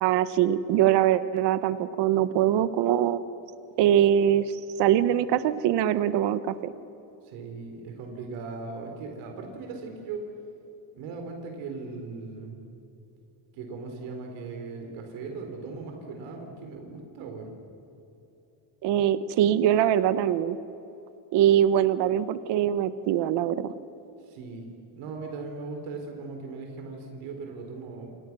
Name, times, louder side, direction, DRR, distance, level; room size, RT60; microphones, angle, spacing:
voice 1, 0.0-3.2 3.8-6.7 18.8-20.6 21.3-23.7, right 11 dB, 55° right, 13 dB, 1.2 m, -23 dB
voice 2, 7.2-10.3 10.9-12.6 13.5-17.5 24.3-24.7 24.9-28.3, right 4 dB, 85° right, 3 dB, 4.5 m, -38 dB
29.0 x 28.5 x 6.3 m, 2.9 s
cardioid pair, 170°, 49 cm